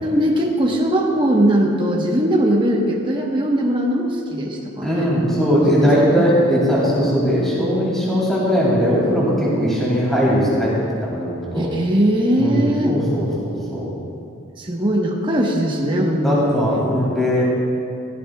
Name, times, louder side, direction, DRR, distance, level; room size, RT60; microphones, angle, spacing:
voice 1, 0.0-5.1 5.7-6.3 11.5-13.0 14.6-16.8, equal, 25° right, -1 dB, 1.2 m, -20 dB
voice 2, 4.8-10.7 11.0-11.7 12.4-13.9 16.2-17.4, equal, ahead, -7 dB, 2.5 m, -19 dB
15.5 x 13.5 x 2.4 m, 2.7 s
head